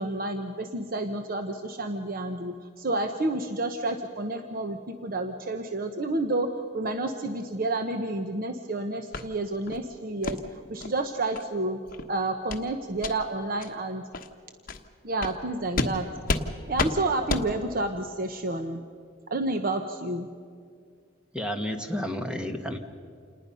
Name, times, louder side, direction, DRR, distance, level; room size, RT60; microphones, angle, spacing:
voice 1, 0.0-11.8 12.1-14.0 15.0-16.1 16.7-18.8 19.3-20.3, right 2 dB, 50° right, 6 dB, 1.0 m, -30 dB
sound 1, 9.1-9.3 9.7-9.8 10.2-10.4 10.8-10.9 11.3-11.5 11.9-12.0 12.5-12.7 13.0-13.1 13.6-13.7 14.1-14.3 14.7-14.8 15.2-15.4 15.8-15.9 16.3-16.5 16.8-16.9 17.3-17.5, left 2 dB, 50° left, 1.3 m, -29 dB
voice 2, 21.3-22.8, equal, 5° right, 5 dB, 1.4 m, -31 dB
28.0 x 20.0 x 5.6 m, 2.2 s
head